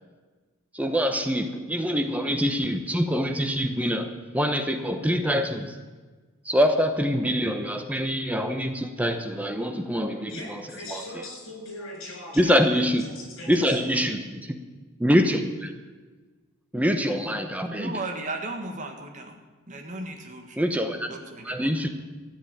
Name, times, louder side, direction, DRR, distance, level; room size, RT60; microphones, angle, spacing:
voice 1, 0.7-5.8 6.4-11.3 12.3-13.0 13.5-14.6 15.0-15.7 16.7-17.9 20.6-21.1 21.4-21.9, equal, 5° right, 6 dB, 0.9 m, -25 dB
voice 2, 10.3-12.6 13.0-13.8, left 1 dB, 60° left, 0 dB, 6.2 m, -40 dB
voice 3, 17.8-19.4 19.7-20.6 21.1-21.7, right 2 dB, 35° right, 3 dB, 1.5 m, -35 dB
13.5 x 8.2 x 8.9 m, 1.3 s
head